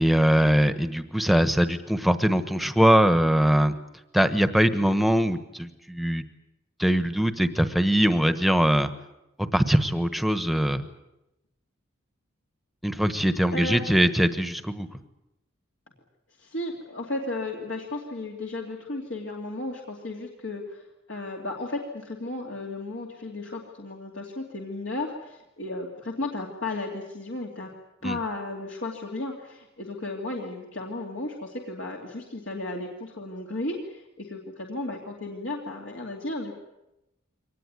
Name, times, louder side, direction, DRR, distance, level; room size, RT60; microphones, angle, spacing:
voice 1, 0.0-3.7 4.1-6.2 6.8-8.9 9.4-10.8 12.8-14.9 28.0-28.2, equal, ahead, 10 dB, 1.2 m, -22 dB
voice 2, 13.5-13.8 16.4-20.8 21.1-27.7 28.0-36.5, left 2 dB, 65° left, -1 dB, 2.8 m, -34 dB
24.0 x 19.0 x 9.6 m, 0.93 s
head